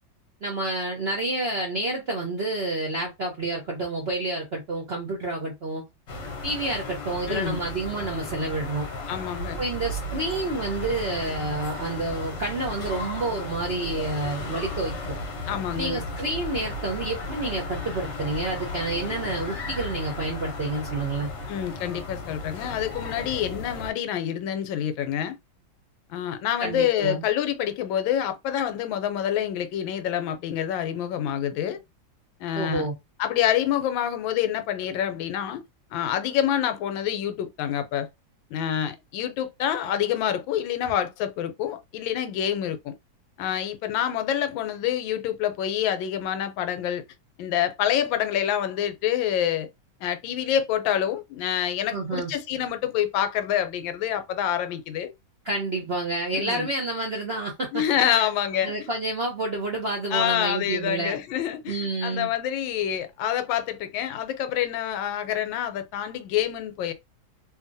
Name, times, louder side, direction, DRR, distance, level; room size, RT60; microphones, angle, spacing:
voice 1, 0.4-5.8 6.4-8.9 9.6-15.2 15.7-21.3 26.6-27.2 32.5-32.9 51.9-52.3 55.4-57.8 58.1-58.3 58.6-61.2 61.7-62.3, right 2 dB, 60° right, 0.6 m, -29 dB
sound 1, 6.1-23.9, left 2 dB, 50° left, 0.9 m, -35 dB
voice 2, 7.3-7.6 9.1-9.6 15.5-16.0 21.5-25.4 26.1-31.8 32.4-32.9 33.2-35.6 35.9-38.1 38.5-43.0 43.4-47.0 47.4-49.7 50.0-55.1 56.3-56.7 57.7-58.7 60.1-66.9, left 10 dB, 80° left, 1.3 m, -27 dB
2.7 x 2.6 x 2.6 m
omnidirectional pair, 2.1 m